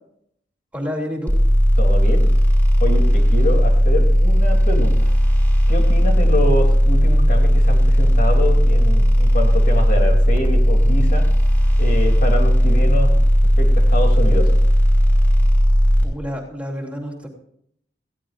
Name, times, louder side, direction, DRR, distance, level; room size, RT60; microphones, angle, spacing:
voice 1, 0.7-1.3 16.0-17.3, equal, 5° right, 0 dB, 3.0 m, -29 dB
sound 1, 1.3-16.0, equal, 10° left, 4.8 m, -15 dB
voice 2, 1.8-2.2 2.8-5.1 5.7-11.2 11.8-13.1 13.6-14.5, left 1 dB, 50° left, 1 dB, 3.1 m, -25 dB
20.0 x 16.0 x 2.6 m, 0.68 s
head